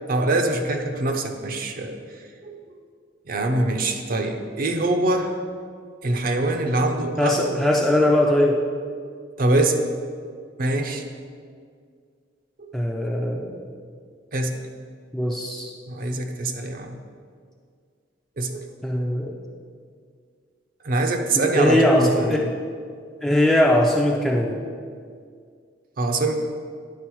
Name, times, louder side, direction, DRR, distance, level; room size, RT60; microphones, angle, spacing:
voice 1, 0.1-2.0 2.4-2.6 3.3-5.4 6.0-7.6 9.4-9.8 10.6-11.1 12.6-12.7 14.3-14.6 15.9-17.0 18.4-18.7 20.8-22.4 26.0-26.3, right 2 dB, 50° right, 5 dB, 0.6 m, -24 dB
voice 2, 7.2-8.6 12.7-13.7 15.1-15.7 18.8-19.3 21.3-22.5 23.2-24.6, left 1 dB, ahead, -1 dB, 0.4 m, -20 dB
10.0 x 3.9 x 4.5 m, 2.1 s
head